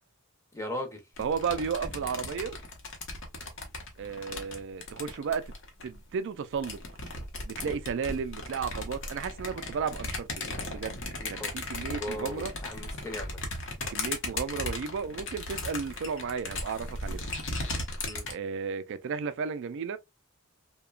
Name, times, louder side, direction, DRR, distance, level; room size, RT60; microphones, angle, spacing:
voice 1, 0.5-1.0 11.2-11.5 12.0-13.3 18.0-18.2, left 1 dB, 15° left, 0.6 m, -37 dB
sound 1, 1.2-6.0 6.5-18.3, left 2 dB, 60° left, 0.8 m, -37 dB
voice 2, 1.2-2.6 4.0-5.4 5.8-6.8 7.5-11.0 11.3-12.5 13.9-17.2 18.3-20.0, right 6 dB, 60° right, 0.3 m, -33 dB
2.8 x 2.2 x 2.3 m
head